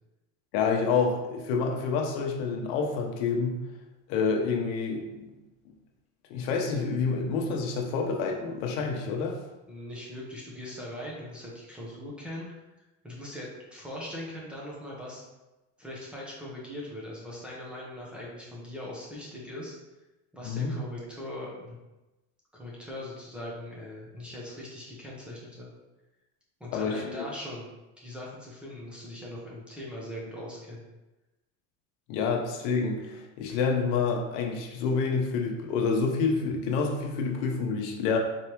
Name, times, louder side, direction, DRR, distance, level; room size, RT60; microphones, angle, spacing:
voice 1, 0.5-3.6 4.1-5.3 6.3-9.4 20.4-20.7 26.7-27.0 32.1-38.2, left 5 dB, 75° left, 1 dB, 0.9 m, -28 dB
voice 2, 9.7-15.3 15.8-19.7 20.3-21.8 22.5-25.7 26.6-27.7 28.0-30.9, left 1 dB, 5° right, -5 dB, 0.8 m, -40 dB
4.6 x 3.4 x 3.0 m, 1.0 s
cardioid pair, 170°, 34 cm